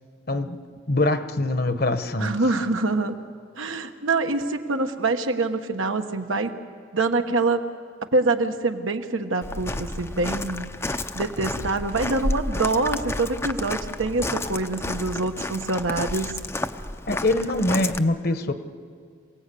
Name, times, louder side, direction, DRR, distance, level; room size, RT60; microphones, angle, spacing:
voice 1, 0.9-2.4 17.1-18.5, left 2 dB, 50° left, 9 dB, 1.1 m, -23 dB
voice 2, 2.2-3.2 3.6-6.5 6.9-7.6 8.1-16.4, right 3 dB, 85° right, 6 dB, 1.4 m, -25 dB
Walk footsteps, 9.4-18.0, left 2 dB, 15° left, 0.6 m, -31 dB
27.0 x 18.0 x 8.5 m, 2.2 s
head